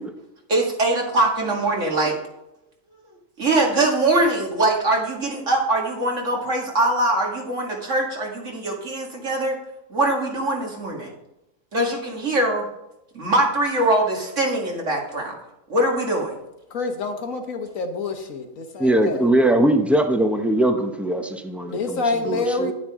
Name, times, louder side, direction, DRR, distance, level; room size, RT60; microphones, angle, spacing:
voice 1, 0.5-2.2 3.4-9.6 9.9-11.1 11.7-12.7 13.1-15.4 15.7-16.3, right 2 dB, 60° right, -1 dB, 2.5 m, -22 dB
voice 2, 16.7-19.2 21.7-22.7, left 3 dB, 70° left, 5 dB, 1.6 m, -27 dB
voice 3, 18.8-22.7, right 1 dB, ahead, 5 dB, 0.6 m, -21 dB
10.5 x 9.4 x 3.7 m, 0.88 s
omnidirectional pair, 1.5 m